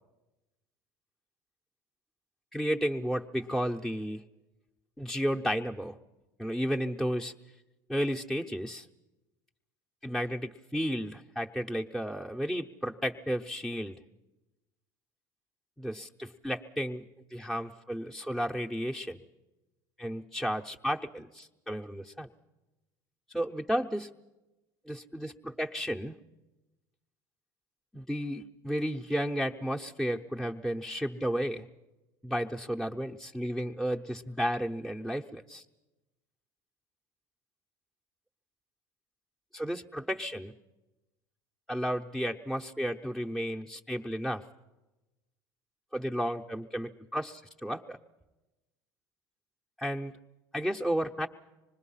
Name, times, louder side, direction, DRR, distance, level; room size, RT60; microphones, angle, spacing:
voice 1, 2.5-4.2 5.0-6.0 6.4-7.3 7.9-8.9 10.0-14.0 15.8-17.0 17.3-19.2 20.0-22.3 23.3-24.1 24.9-26.2 27.9-31.7 32.2-35.6 39.5-40.5 41.7-44.4 45.9-48.0 49.8-50.1 50.5-51.3, equal, ahead, 0 dB, 0.8 m, -33 dB
25.5 x 20.0 x 5.7 m, 1.1 s
supercardioid pair, 95°, 11 cm